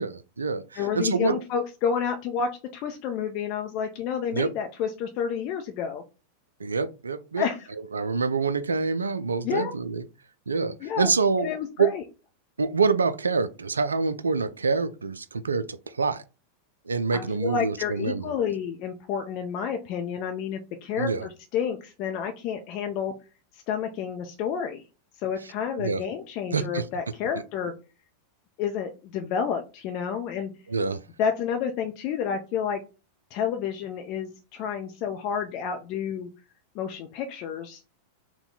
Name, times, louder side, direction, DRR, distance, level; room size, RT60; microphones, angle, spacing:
voice 1, 0.0-1.4 4.3-4.5 6.6-7.5 7.9-10.0 10.5-11.5 11.8-11.9 12.6-16.2 16.9-18.3 21.0-21.3 25.8-26.0 26.5-26.9 30.7-31.0, right 4 dB, 75° right, 0.3 m, -26 dB
voice 2, 0.7-6.0 7.4-7.7 9.4-9.7 10.8-11.1 11.4-12.0 17.1-23.1 23.5-24.8 25.2-27.7 28.6-30.5 31.2-32.8 33.3-36.3 36.7-37.8, left 7 dB, 40° left, 0.5 m, -30 dB
4.2 x 2.2 x 3.7 m
figure-of-eight pair, 90°, 0 cm